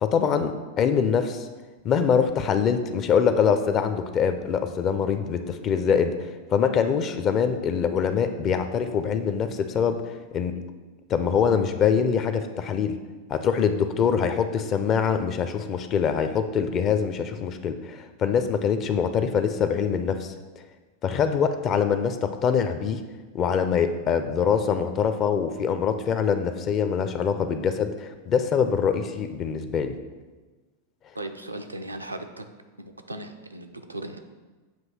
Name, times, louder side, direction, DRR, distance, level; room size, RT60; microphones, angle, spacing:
voice 1, 0.0-1.5 1.8-10.6 11.1-12.9 13.3-20.3 21.0-23.0 23.3-30.0, left 7 dB, 30° left, 9 dB, 0.5 m, -24 dB
voice 2, 31.1-32.5 32.8-34.2, right 1 dB, 85° right, 5 dB, 0.4 m, -37 dB
7.5 x 2.7 x 5.4 m, 1.3 s
figure-of-eight pair, 90°, 0 cm